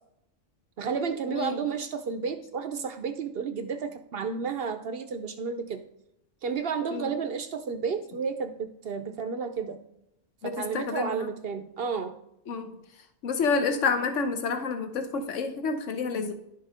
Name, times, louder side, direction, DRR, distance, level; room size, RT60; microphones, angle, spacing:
voice 1, 0.8-5.8 6.4-9.8 10.4-12.1, right 6 dB, 55° right, 9 dB, 0.8 m, -32 dB
voice 2, 1.3-1.6 6.9-7.1 10.4-11.3 12.5-12.7 13.2-16.3, left 4 dB, 70° left, 7 dB, 1.2 m, -29 dB
11.0 x 4.7 x 4.9 m, 0.80 s
omnidirectional pair, 1.3 m